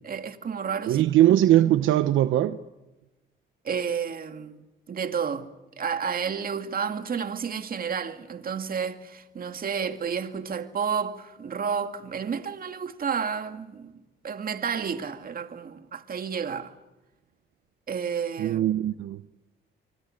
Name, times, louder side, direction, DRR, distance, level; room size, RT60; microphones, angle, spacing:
voice 1, 0.0-1.0 3.6-4.6 4.9-5.5 5.8-13.9 14.2-16.7 17.9-18.6, right 6 dB, 45° right, 2.2 m, -31 dB
voice 2, 0.9-2.6 18.4-19.2, right 13 dB, 80° right, 0.9 m, -21 dB
27.5 x 24.5 x 6.6 m
cardioid pair, 90°, 20 cm